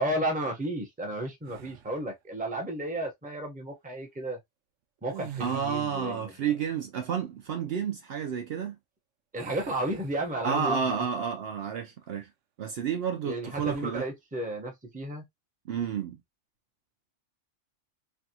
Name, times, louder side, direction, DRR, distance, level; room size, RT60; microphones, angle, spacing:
voice 1, 0.0-4.4 5.0-6.5 9.3-11.0 13.2-15.3, right 1 dB, 10° right, 0.7 m, -33 dB
sound 1, 1.4-2.1 5.0-6.1 9.4-10.8 11.3-11.5 13.5-14.0, right 10 dB, 90° right, 0.9 m, -46 dB
voice 2, 5.4-8.8 10.4-12.3 12.6-14.1 15.7-16.2, right 7 dB, 65° right, 0.7 m, -30 dB
3.4 x 2.3 x 2.7 m
omnidirectional pair, 1.2 m